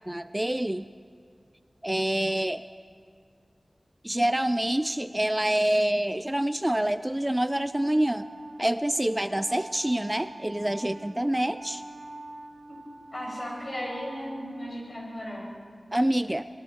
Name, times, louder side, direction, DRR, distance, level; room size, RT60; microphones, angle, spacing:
voice 1, 0.1-0.9 1.8-2.7 4.0-8.3 8.6-11.8 15.9-16.5, right 1 dB, 15° right, 12 dB, 0.4 m, -26 dB
Wind instrument woodwind instrument, 7.7-15.3, right 2 dB, 85° right, 2.6 m, -46 dB
voice 2, 13.1-15.5, equal, 45° left, -3 dB, 7.8 m, -35 dB
27.5 x 21.0 x 4.7 m, 2.2 s
wide cardioid pair, 60°, 0 cm